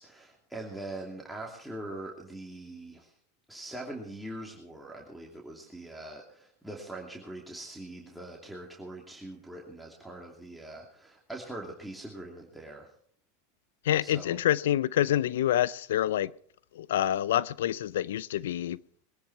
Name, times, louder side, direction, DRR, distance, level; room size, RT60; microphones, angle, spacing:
voice 1, 0.0-3.1 3.5-12.9 14.0-14.4, right 1 dB, ahead, 2.7 m, -42 dB
voice 2, 13.9-16.3 16.8-18.8, left 12 dB, 80° left, 0.5 m, -27 dB
22.0 x 10.5 x 4.7 m
hypercardioid pair, 115°, 0 cm